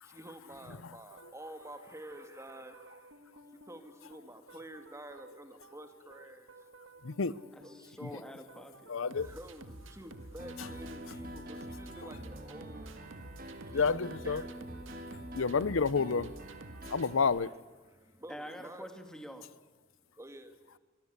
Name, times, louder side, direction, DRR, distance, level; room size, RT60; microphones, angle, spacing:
voice 1, 0.0-6.6 7.6-8.1 9.1-13.0 13.6-14.0 14.2-14.6 16.7-16.9 17.9-18.9 20.0-20.8, right 1 dB, 15° right, 2.1 m, -50 dB
sound 1, 1.1-17.8, right 1 dB, 75° right, 2.0 m, -52 dB
voice 2, 7.0-7.3 8.0-8.1 8.9-9.3 13.7-14.4 15.3-16.3 16.9-17.5, left 5 dB, 85° left, 0.7 m, -29 dB
voice 3, 7.6-9.0 18.3-19.5, equal, 5° left, 2.6 m, -46 dB
Piano, 10.4-17.2, right 1 dB, 45° right, 2.9 m, -46 dB
25.0 x 24.0 x 8.2 m
head